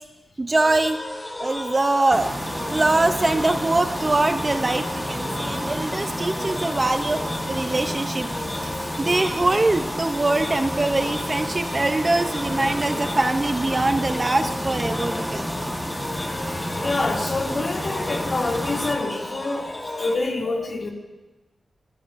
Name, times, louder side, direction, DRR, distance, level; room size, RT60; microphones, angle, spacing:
voice 1, 0.4-1.0 1.4-2.3 2.6-7.2 7.5-8.3 8.6-8.7 9.0-15.7, right 2 dB, 25° right, 7 dB, 0.5 m, -23 dB
sound 1, 0.5-20.2, left 1 dB, 20° left, 1.8 m, -34 dB
sound 2, 2.1-19.0, equal, 5° left, 1.3 m, -30 dB
voice 2, 16.1-20.9, left 3 dB, 40° left, -1 dB, 2.3 m, -27 dB
23.0 x 15.5 x 2.5 m, 1.1 s
wide cardioid pair, 170°, 0 cm